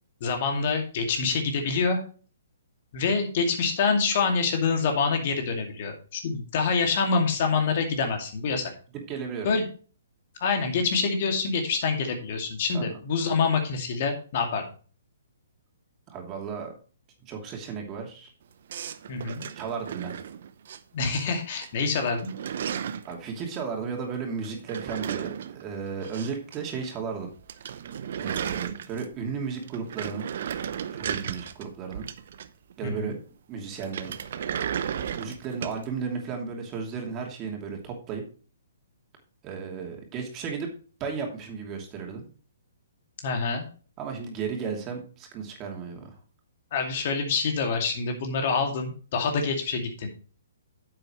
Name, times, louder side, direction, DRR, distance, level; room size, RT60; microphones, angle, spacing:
voice 1, 0.2-2.0 2.9-8.7 9.4-9.6 10.4-14.6 19.1-19.4 20.9-22.3 32.8-33.1 43.2-43.7 46.7-50.1, left 5 dB, 50° left, 4 dB, 2.3 m, -26 dB
voice 2, 9.1-9.5 12.7-12.9 16.1-16.7 17.2-18.3 19.5-20.1 23.1-27.3 28.2-30.3 30.9-32.1 32.8-33.1 33.5-34.2 34.9-38.2 39.4-40.7 41.0-42.3 44.0-46.1, right 6 dB, 25° right, 1 dB, 2.7 m, -34 dB
Office chair rolling on ground, 18.7-20.8 21.1-21.7 21.9-23.1 24.4-26.6 26.8-26.9 27.2-27.3 27.5-29.2 29.6-32.7 33.8-35.8, right 8 dB, 55° right, 0.7 m, -34 dB
9.5 x 7.7 x 3.1 m, 0.38 s
hypercardioid pair, 130°, 0 cm